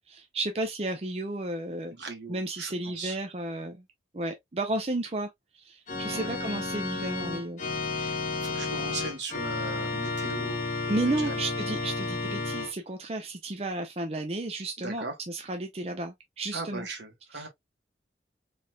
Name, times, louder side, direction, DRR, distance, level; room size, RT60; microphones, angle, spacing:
voice 1, 0.1-1.9 2.3-3.8 4.1-7.6 10.9-16.9 17.3-17.5, right 2 dB, 35° right, 0.6 m, -33 dB
voice 2, 1.9-3.1 6.1-6.3 7.9-8.2 8.4-11.4 14.8-15.1 16.5-17.5, right 3 dB, 80° right, 1.6 m, -39 dB
Organ, 5.9-12.7, left 3 dB, 45° left, 1.1 m, -32 dB
4.1 x 3.4 x 2.3 m
head